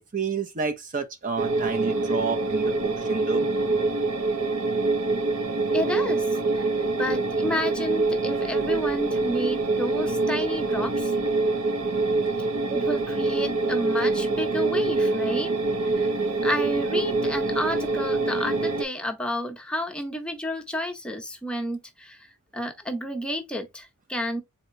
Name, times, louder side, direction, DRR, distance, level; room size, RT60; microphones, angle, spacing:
voice 1, 0.1-3.5, right 5 dB, 35° right, 0.5 m, -30 dB
sound 1, 1.4-18.8, right 3 dB, 75° right, 0.8 m, -25 dB
voice 2, 5.7-6.7 6.9-11.1 12.7-15.6 16.0-16.1 16.4-24.4, equal, 5° left, 0.7 m, -31 dB
4.1 x 2.7 x 3.1 m
head